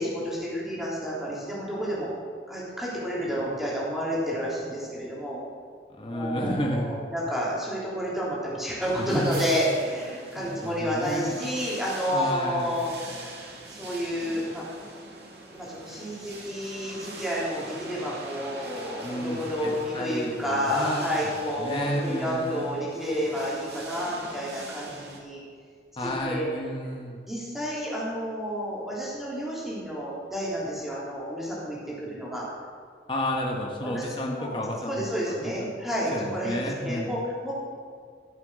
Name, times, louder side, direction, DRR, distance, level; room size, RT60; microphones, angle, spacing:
voice 1, 0.0-2.1 2.5-5.4 6.1-13.4 13.7-14.6 15.5-25.4 26.0-26.5 27.3-32.4 33.8-34.5 34.9-37.5, equal, ahead, -7 dB, 3.4 m, -30 dB
voice 2, 5.9-6.9 9.0-9.4 10.3-11.4 12.1-12.8 19.0-21.0 21.6-22.7 26.0-27.2 33.1-35.0 35.6-35.7 36.1-37.1, left 1 dB, 30° left, -1 dB, 1.2 m, -31 dB
sound 1, 8.8-25.2, right 2 dB, 70° right, 2.2 m, -43 dB
14.0 x 7.5 x 6.3 m, 2.1 s
head